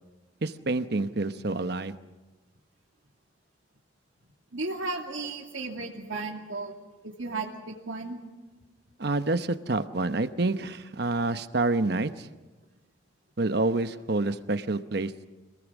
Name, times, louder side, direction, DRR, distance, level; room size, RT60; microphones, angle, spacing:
voice 1, 0.4-1.9 9.0-12.3 13.4-15.1, right 2 dB, 55° right, 11 dB, 0.9 m, -28 dB
voice 2, 4.5-6.7 7.0-8.2, right 3 dB, 90° right, 1 dB, 2.6 m, -34 dB
26.5 x 19.5 x 6.2 m, 1.2 s
head